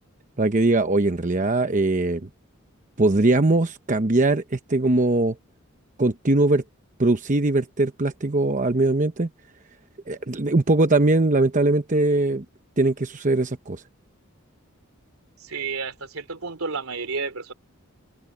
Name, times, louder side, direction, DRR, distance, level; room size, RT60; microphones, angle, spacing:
voice 1, 0.4-2.2 3.0-5.4 6.0-6.6 7.0-9.3 10.1-12.4 12.8-13.8, right 2 dB, 35° right, 0.9 m, -21 dB
voice 2, 15.4-17.5, right 4 dB, 85° right, 3.2 m, -31 dB
head